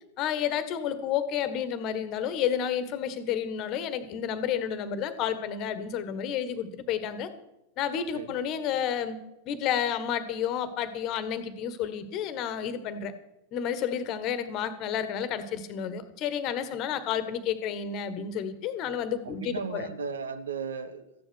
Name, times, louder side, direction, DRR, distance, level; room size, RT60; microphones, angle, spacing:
voice 1, 0.2-7.3 7.8-9.2 9.4-13.1 13.5-19.9, left 8 dB, 40° left, 12 dB, 1.5 m, -31 dB
voice 2, 19.2-21.1, right 5 dB, 65° right, 12 dB, 1.3 m, -36 dB
14.5 x 10.5 x 6.3 m, 0.89 s
figure-of-eight pair, 90°, 0 cm